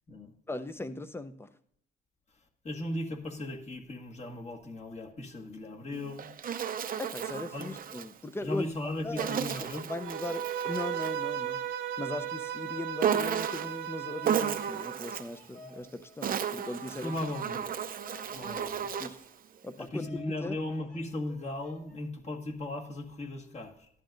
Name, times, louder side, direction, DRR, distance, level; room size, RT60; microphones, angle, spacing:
voice 1, 0.5-1.5 7.0-8.7 9.0-11.6 12.0-17.1 19.0-19.2 19.6-20.6, left 2 dB, 10° left, 11 dB, 0.6 m, -39 dB
voice 2, 2.6-6.3 7.5-7.7 8.4-9.8 17.0-17.8 18.3-18.9 19.8-23.9, left 1 dB, 35° left, 2 dB, 1.6 m, -37 dB
Insect, 5.9-8.1 9.2-11.2 13.0-13.8 14.2-15.4 16.0-19.3, right 8 dB, 45° right, 0.6 m, -33 dB
Bowed string instrument, 10.0-15.0, right 10 dB, 80° right, 1.1 m, -36 dB
Bird vocalization bird call bird song, 14.0-22.0, left 2 dB, 55° left, 4.3 m, -56 dB
14.0 x 11.0 x 2.6 m, 0.67 s
cardioid pair, 90°, 20 cm